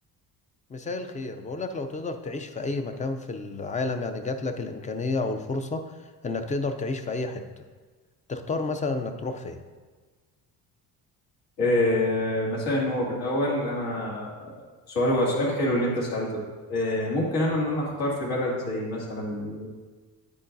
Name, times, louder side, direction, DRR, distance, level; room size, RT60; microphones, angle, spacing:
voice 1, 0.7-7.7 8.3-9.6, left 3 dB, 20° left, 8 dB, 0.4 m, -31 dB
voice 2, 11.6-14.5 14.9-16.4 16.7-19.7, left 1 dB, 80° left, -3 dB, 2.5 m, -26 dB
9.8 x 8.5 x 2.6 m, 1.4 s
cardioid pair, 150°, 38 cm